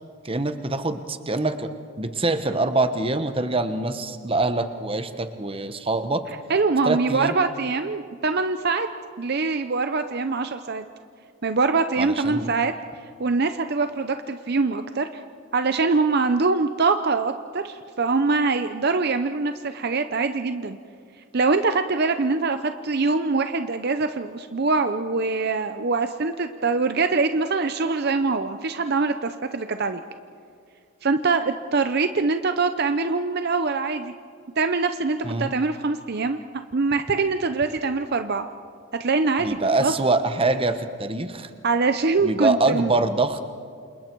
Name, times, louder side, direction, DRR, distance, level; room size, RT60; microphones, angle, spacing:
voice 1, 0.2-1.7 2.0-6.2 6.8-7.3 12.0-12.5 35.2-35.5 39.4-41.5 42.2-43.4, right 2 dB, 25° right, 9 dB, 1.1 m, -24 dB
voice 2, 6.5-8.9 9.2-10.8 11.4-12.7 13.2-15.1 15.5-20.8 21.3-30.0 31.0-34.1 34.6-36.4 36.7-38.4 39.0-39.9 41.6-42.9, right 4 dB, 50° right, 8 dB, 0.7 m, -23 dB
28.5 x 27.5 x 4.6 m, 2.3 s
head